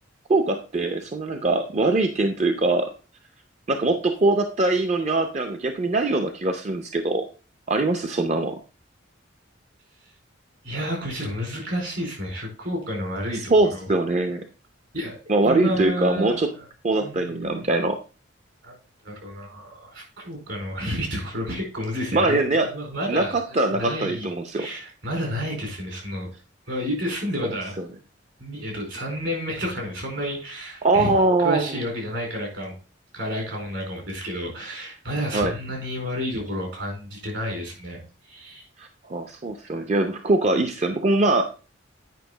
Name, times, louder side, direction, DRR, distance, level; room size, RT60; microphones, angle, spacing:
voice 1, 0.3-2.9 3.7-7.3 7.7-8.6 13.5-14.4 15.3-16.5 16.8-18.0 22.1-22.7 23.1-24.7 27.4-27.5 30.8-31.7 35.3-35.5 38.8-41.4, right 2 dB, 35° right, 6 dB, 0.6 m, -22 dB
voice 2, 10.6-13.9 14.9-16.7 17.0-17.6 18.6-18.7 19.0-26.3 26.7-27.8 28.4-32.7 33.1-38.0 38.3-38.7, equal, 70° right, 0 dB, 4.4 m, -31 dB
9.2 x 5.4 x 3.9 m, 0.34 s
head